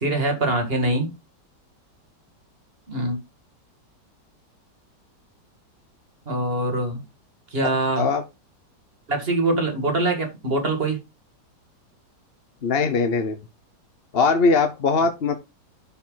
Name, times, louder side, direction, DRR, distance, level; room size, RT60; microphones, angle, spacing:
voice 1, 0.0-1.1 2.9-3.2 6.3-7.0 7.5-8.1 9.1-11.0, right 2 dB, 35° right, 2.3 m, -23 dB
voice 2, 12.6-13.4 14.1-15.4, left 4 dB, 45° left, 0.9 m, -20 dB
11.5 x 4.9 x 3.9 m
omnidirectional pair, 1.9 m